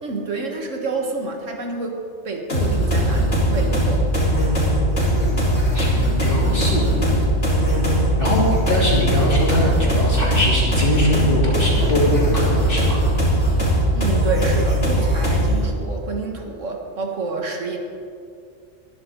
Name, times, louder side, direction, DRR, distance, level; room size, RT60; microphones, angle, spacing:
voice 1, 0.0-4.1 13.9-17.8, right 3 dB, 75° right, 2 dB, 2.0 m, -28 dB
sound 1, 2.5-15.6, equal, 65° left, 4.6 m, -19 dB
voice 2, 6.2-6.9 8.2-13.0, left 1 dB, 45° left, -5 dB, 3.6 m, -22 dB
20.0 x 12.5 x 3.8 m, 2.4 s
omnidirectional pair, 1.3 m